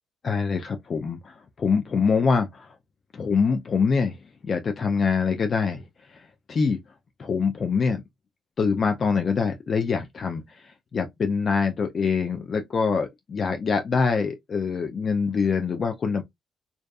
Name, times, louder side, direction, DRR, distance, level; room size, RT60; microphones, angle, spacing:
voice 1, 0.2-2.7 3.1-4.2 4.4-5.8 6.1-6.2 6.5-6.8 7.2-8.0 8.6-16.2, left 5 dB, 45° left, 0.4 m, -24 dB
2.5 x 2.3 x 2.2 m
cardioid pair, 90°, 0 cm